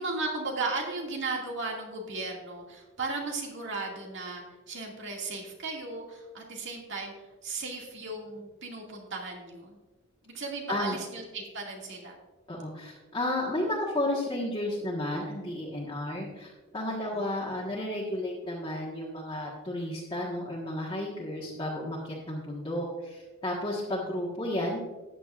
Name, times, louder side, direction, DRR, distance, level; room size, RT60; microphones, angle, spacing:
voice 1, 0.0-7.1 7.4-9.8 10.3-12.1 16.1-16.3 16.9-17.2, right 3 dB, 60° right, 0 dB, 2.1 m, -36 dB
voice 2, 12.5-24.9, left 1 dB, 25° left, -6 dB, 1.4 m, -32 dB
14.0 x 9.2 x 2.5 m, 1.2 s
head